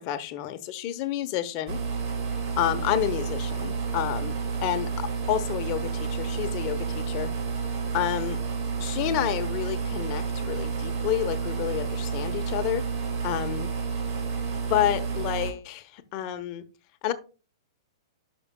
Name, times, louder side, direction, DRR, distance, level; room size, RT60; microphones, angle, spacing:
voice 1, 0.0-1.8 2.6-4.3 4.6-4.9 5.3-7.3 7.9-8.4 8.8-12.9 13.2-13.7 14.5-16.6 17.0-17.1, left 12 dB, 40° left, 0.9 m, -29 dB
sound 1, 1.7-15.5, right 5 dB, 50° right, 2.2 m, -30 dB
11.5 x 6.1 x 2.3 m
hypercardioid pair, 120°, 3 cm